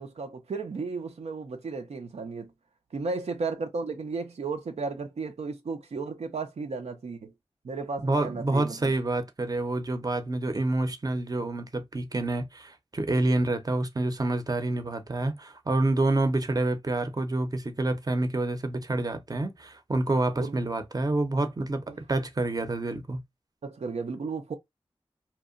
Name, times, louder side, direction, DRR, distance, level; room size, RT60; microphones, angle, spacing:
voice 1, 0.0-2.5 2.9-7.3 7.6-8.9 20.4-20.6 21.9-22.0 23.6-24.5, right 4 dB, 90° right, 0.4 m, -34 dB
voice 2, 8.0-23.2, right 2 dB, 35° right, 0.5 m, -28 dB
2.8 x 2.1 x 2.4 m
wide cardioid pair, 50°, 11 cm